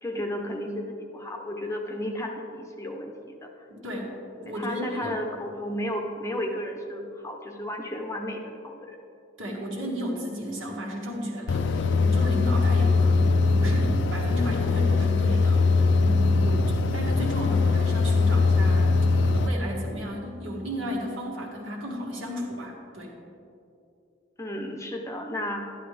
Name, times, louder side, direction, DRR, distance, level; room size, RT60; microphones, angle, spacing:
voice 1, 0.0-3.5 4.4-9.0 24.4-25.6, left 1 dB, 15° left, 2 dB, 0.8 m, -33 dB
voice 2, 3.7-4.1 4.4-5.2 9.4-23.1, equal, 75° right, -2 dB, 2.0 m, -34 dB
sound 1, 11.5-19.5, left 3 dB, 60° left, 0.4 m, -21 dB
11.0 x 11.0 x 3.4 m, 2.6 s
head